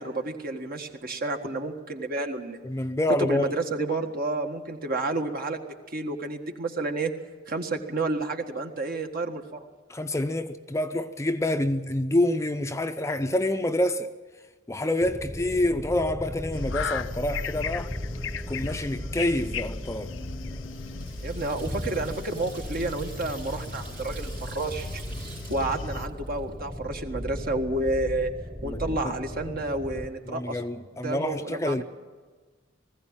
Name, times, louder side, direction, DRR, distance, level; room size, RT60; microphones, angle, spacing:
voice 1, 0.0-2.6 3.1-5.6 5.9-7.1 7.5-9.6 21.2-25.0 25.5-28.3 28.6-30.6 31.0-31.8, right 2 dB, 50° right, 1.7 m, -30 dB
voice 2, 2.6-3.5 9.9-14.1 14.7-17.9 18.5-20.1 28.6-29.1 30.3-31.8, left 1 dB, 15° left, 0.6 m, -27 dB
sound 1, 15.0-30.1, equal, 5° right, 1.0 m, -37 dB
sound 2, 16.5-26.1, left 6 dB, 85° left, 0.6 m, -38 dB
Water tap faucet / Sink (filling or washing), 20.0-26.7, right 5 dB, 70° right, 4.2 m, -48 dB
20.0 x 15.5 x 8.9 m
head